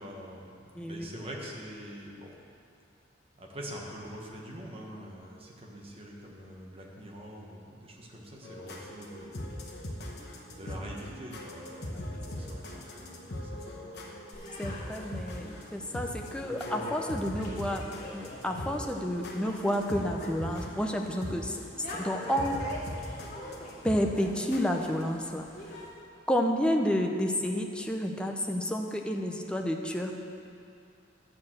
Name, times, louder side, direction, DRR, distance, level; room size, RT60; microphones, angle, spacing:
voice 1, 0.0-2.3 3.4-9.5 10.5-14.2, equal, 30° right, -2 dB, 1.2 m, -44 dB
voice 2, 0.8-1.1 11.9-12.0 14.6-21.6 22.0-22.6 23.8-25.5 26.3-30.1, equal, 5° left, 2 dB, 0.5 m, -30 dB
sound 1, 8.4-25.0, left 1 dB, 60° left, 1.1 m, -41 dB
sound 2, 14.3-25.9, left 1 dB, 40° left, 2.2 m, -44 dB
11.0 x 4.5 x 7.4 m, 2.5 s
head